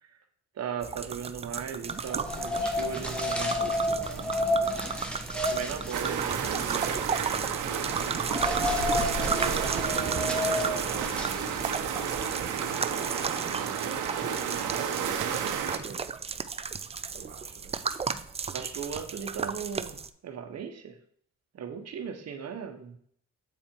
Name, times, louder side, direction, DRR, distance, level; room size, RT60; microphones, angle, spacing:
voice 1, 0.6-4.6 5.3-6.7 18.5-20.0 20.2-21.0 21.5-23.0, right 7 dB, 55° right, 6 dB, 1.2 m, -38 dB
sound 1, 0.8-20.1, right 5 dB, 20° right, 0.4 m, -35 dB
sound 2, 2.0-11.9, left 1 dB, 5° left, 1.2 m, -31 dB
sound 3, 5.9-15.8, right 8 dB, 85° right, 1.0 m, -31 dB
voice 2, 6.5-7.0 9.1-13.1 13.4-16.4 17.1-17.8, right 7 dB, 40° right, 2 dB, 0.8 m, -42 dB
8.2 x 4.3 x 4.5 m, 0.63 s
cardioid pair, 90°, 30 cm